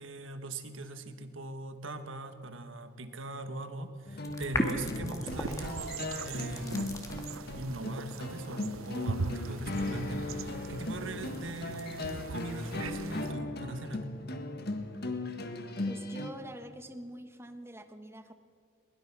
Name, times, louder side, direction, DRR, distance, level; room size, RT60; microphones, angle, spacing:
voice 1, 0.0-7.1 7.6-14.1, right 2 dB, 70° right, 9 dB, 1.6 m, -40 dB
sound 1, 4.1-16.3, left 2 dB, 50° left, 1.6 m, -38 dB
sound 2, 4.2-7.4 8.1-13.0, left 1 dB, 15° left, 1.9 m, -38 dB
sound 3, 5.3-13.3, right 4 dB, 85° right, 0.7 m, -41 dB
voice 2, 15.9-18.3, right 1 dB, 10° right, 8 dB, 1.2 m, -45 dB
22.5 x 20.5 x 6.2 m, 2.1 s
head